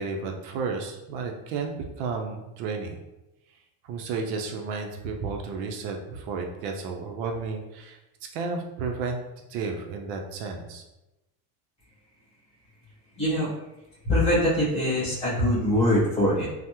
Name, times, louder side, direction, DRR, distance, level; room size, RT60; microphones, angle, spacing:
voice 1, 0.0-3.0 3.8-8.0 8.3-9.2 9.5-10.8, right 4 dB, 70° right, 3 dB, 0.5 m, -32 dB
voice 2, 13.2-13.5 14.0-16.5, left 1 dB, 15° left, -9 dB, 1.3 m, -23 dB
3.3 x 2.0 x 2.9 m, 0.97 s
cardioid pair, 170°, 43 cm